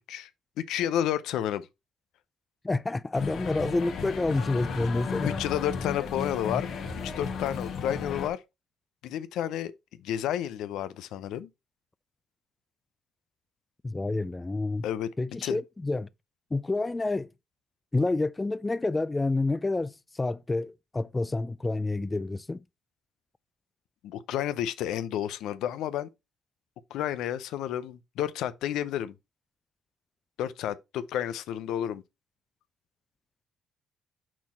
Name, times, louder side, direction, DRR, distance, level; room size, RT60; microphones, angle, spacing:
voice 1, 0.6-1.7 5.2-6.7 7.0-8.4 9.0-9.7 10.0-11.5 14.8-15.1 15.4-15.6 24.0-26.1 26.9-29.2 30.4-32.0, left 11 dB, 90° left, 0.6 m, -31 dB
voice 2, 2.6-5.4 6.5-6.6 13.8-14.8 15.2-16.1 16.5-17.3 17.9-22.6, left 2 dB, 20° left, 0.3 m, -28 dB
sound 1, 3.1-8.3, left 5 dB, 70° left, 1.6 m, -35 dB
6.1 x 4.3 x 4.2 m
cardioid pair, 90°, 0 cm